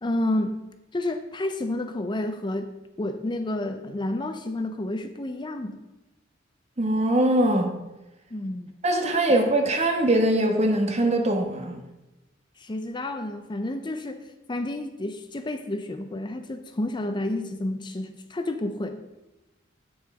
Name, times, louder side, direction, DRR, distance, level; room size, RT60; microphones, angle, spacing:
voice 1, 0.0-0.6 0.9-2.7 3.0-5.8 8.3-8.7 12.6-19.0, left 1 dB, 25° left, 0.5 m, -30 dB
voice 2, 6.8-7.7 8.8-11.8, right 1 dB, 35° right, 1.2 m, -22 dB
9.0 x 6.7 x 4.8 m
head